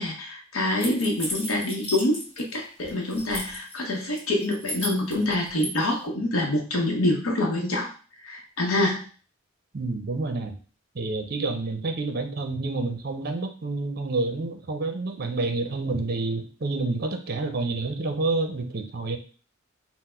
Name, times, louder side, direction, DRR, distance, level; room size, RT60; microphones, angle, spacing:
voice 1, 0.0-9.1, left 1 dB, 85° left, 0 dB, 0.7 m, -26 dB
sound 1, 0.8-2.5 2.8-3.7 4.2-5.7, left 1 dB, 30° left, 0.9 m, -34 dB
voice 2, 9.7-10.5 10.9-19.2, right 3 dB, 45° right, 6 dB, 0.6 m, -28 dB
4.2 x 2.0 x 4.2 m, 0.38 s
head